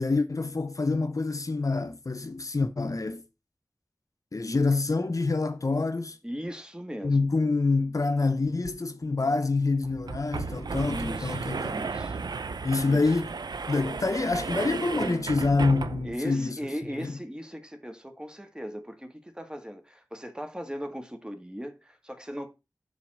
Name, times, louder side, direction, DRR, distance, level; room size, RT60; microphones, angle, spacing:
voice 1, 0.0-3.2 4.3-6.2 7.0-11.9 12.6-13.3 13.7-16.6 16.9-17.1, left 3 dB, 55° left, 0.7 m, -26 dB
voice 2, 6.2-7.3 10.9-12.2 12.8-13.1 16.0-22.5, equal, 10° right, 1.7 m, -38 dB
sound 1, 8.6-8.7 9.0-9.1 9.8-16.3, right 4 dB, 90° right, 0.5 m, -34 dB
7.4 x 4.0 x 6.0 m
wide cardioid pair, 40°, 7 cm